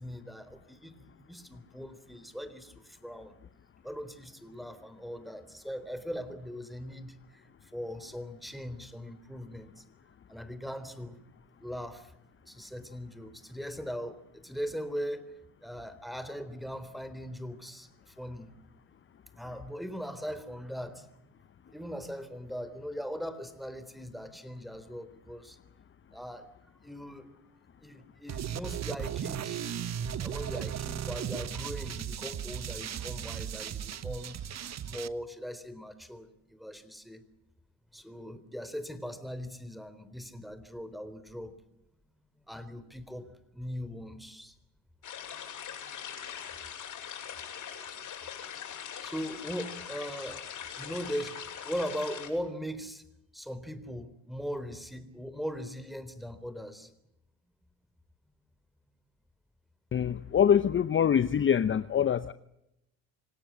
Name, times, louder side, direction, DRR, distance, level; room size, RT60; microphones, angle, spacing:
voice 1, 0.0-3.3 3.8-7.4 7.7-9.8 10.3-11.2 11.6-12.1 12.5-15.3 15.6-18.5 19.3-21.1 21.7-25.6 26.1-26.5 26.8-27.3 27.8-29.7 30.2-34.4 34.8-37.2 37.9-41.5 42.5-43.3 43.5-44.5 45.9-46.3 49.0-50.4 50.8-51.4 51.6-53.0 53.3-56.9, equal, ahead, 3.7 m, -40 dB
sound 1, 28.3-35.1, right 9 dB, 45° right, 1.3 m, -36 dB
sound 2, 45.0-52.3, left 8 dB, 55° left, 7.4 m, -42 dB
voice 2, 59.9-62.3, left 8 dB, 35° left, 0.9 m, -24 dB
26.5 x 18.0 x 9.7 m
supercardioid pair, 70°, 37 cm